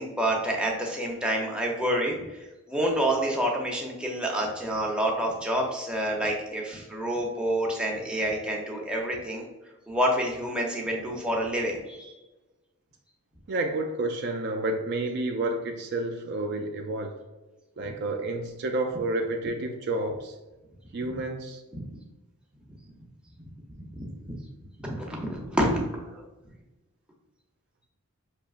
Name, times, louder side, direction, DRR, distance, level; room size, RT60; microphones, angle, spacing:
voice 1, 0.0-9.4 9.9-12.1 21.0-21.1 23.8-24.3 24.8-26.2, right 1 dB, 5° right, -2 dB, 0.6 m, -28 dB
voice 2, 13.5-17.2 17.8-20.4 20.9-21.6, right 2 dB, 50° right, 4 dB, 0.3 m, -30 dB
5.3 x 2.9 x 2.4 m, 1.1 s
head